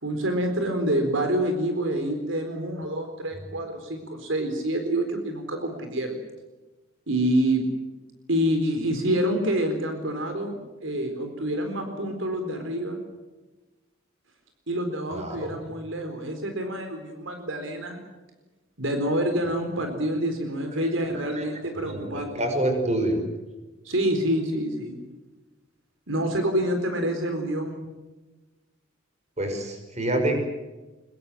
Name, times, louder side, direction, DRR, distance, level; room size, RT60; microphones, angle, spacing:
voice 1, 0.0-6.2 7.1-7.6 8.3-10.6 10.8-13.0 14.7-18.0 18.8-22.3 23.8-25.0 26.1-27.8, right 1 dB, 70° right, 6 dB, 4.2 m, -27 dB
voice 2, 15.1-15.6 21.1-21.4 21.8-23.3 29.4-30.4, right 1 dB, 35° right, 5 dB, 5.7 m, -27 dB
24.5 x 23.0 x 7.7 m, 1.2 s
head